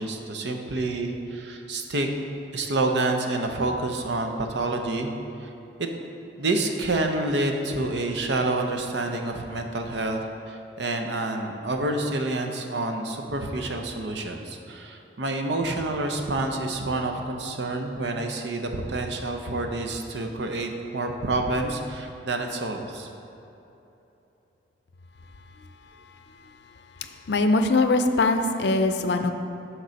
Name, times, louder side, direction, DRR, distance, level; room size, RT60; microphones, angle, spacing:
voice 1, 0.0-2.1 2.5-5.1 5.4-5.5 5.8-5.9 6.4-23.1, right 2 dB, 70° right, 4 dB, 0.7 m, -28 dB
voice 2, 27.0-29.3, left 2 dB, 70° left, 7 dB, 0.5 m, -22 dB
6.7 x 4.6 x 6.3 m, 3.0 s
head